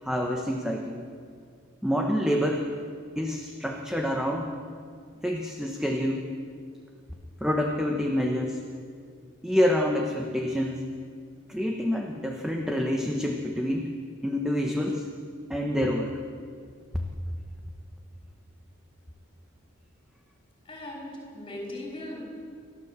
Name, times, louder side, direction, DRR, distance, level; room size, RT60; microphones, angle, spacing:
voice 1, 0.0-1.1 1.8-2.6 3.2-4.5 5.2-6.3 7.4-8.6 9.4-10.9 11.5-13.9 14.2-15.0 15.5-16.2 16.9-17.1, equal, 5° right, 0 dB, 1.2 m, -27 dB
voice 2, 20.7-22.2, left 1 dB, 25° left, -2 dB, 5.0 m, -38 dB
29.0 x 12.5 x 7.7 m, 2.2 s
head